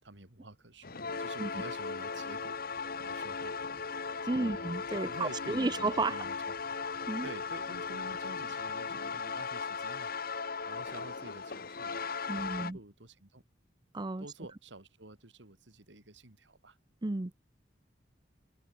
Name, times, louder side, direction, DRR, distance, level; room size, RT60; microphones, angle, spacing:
voice 1, 0.0-2.6 3.0-3.6 4.2-6.5 7.2-10.1 10.6-13.4 14.2-16.8, right 2 dB, 75° right, 3.3 m, -50 dB
sound 1, 0.8-12.7, left 5 dB, 55° left, 1.7 m, -37 dB
voice 2, 4.3-6.2 7.1-7.3 12.3-12.8 13.9-14.3 17.0-17.3, right 2 dB, 25° right, 0.6 m, -32 dB
head